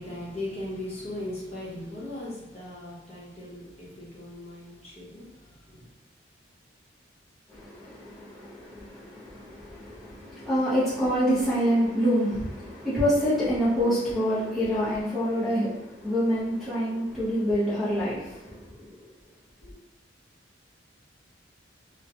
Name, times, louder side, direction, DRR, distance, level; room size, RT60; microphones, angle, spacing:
voice 1, 0.0-5.8, left 1 dB, 30° left, -7 dB, 0.8 m, -38 dB
voice 2, 7.5-19.1, equal, ahead, -11 dB, 0.6 m, -27 dB
2.8 x 2.1 x 2.5 m, 0.89 s
head